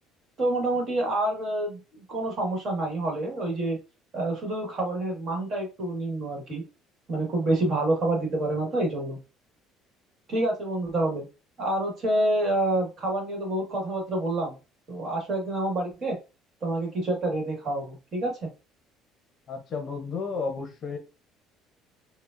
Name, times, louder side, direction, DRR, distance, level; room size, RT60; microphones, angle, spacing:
voice 1, 0.4-3.8 4.1-6.6 7.1-9.2 10.3-11.2 11.6-14.6 14.9-16.2 16.6-18.5, right 1 dB, 35° right, 1.4 m, -27 dB
voice 2, 19.5-21.0, left 4 dB, 40° left, 0.7 m, -32 dB
4.8 x 2.1 x 2.5 m
cardioid pair, 155°, 0 cm